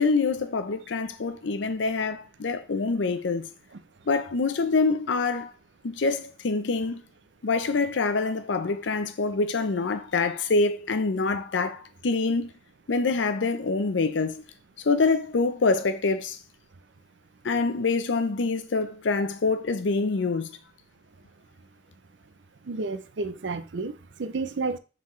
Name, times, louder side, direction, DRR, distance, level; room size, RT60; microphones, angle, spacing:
voice 1, 0.0-3.5 4.1-5.5 5.8-7.0 7.4-12.5 12.9-14.4 14.9-16.4 17.4-20.5, left 3 dB, 85° left, 0.6 m, -25 dB
voice 2, 22.7-24.8, right 3 dB, 75° right, 0.5 m, -31 dB
7.3 x 4.1 x 3.1 m
head